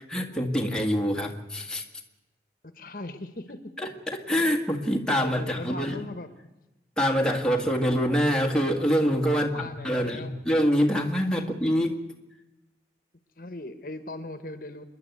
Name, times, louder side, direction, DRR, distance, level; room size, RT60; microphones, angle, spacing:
voice 1, 0.0-1.8 3.8-6.1 7.0-12.0, equal, 5° left, 1 dB, 1.7 m, -25 dB
voice 2, 2.8-3.6 5.1-6.3 9.3-10.4 11.4-11.5 13.4-14.8, left 2 dB, 50° left, 10 dB, 1.3 m, -39 dB
27.5 x 11.0 x 9.4 m, 1.0 s
head